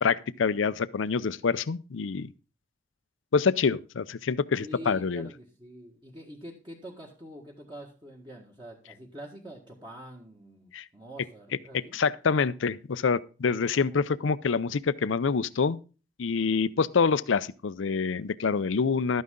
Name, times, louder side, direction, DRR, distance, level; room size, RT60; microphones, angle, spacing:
voice 1, 0.0-2.3 3.3-5.3 10.7-10.8 11.9-15.8 16.2-19.2, left 5 dB, 85° left, 0.5 m, -26 dB
voice 2, 4.6-12.0 13.6-14.0 16.3-16.5, right 1 dB, 25° right, 1.6 m, -45 dB
12.5 x 9.5 x 3.7 m
head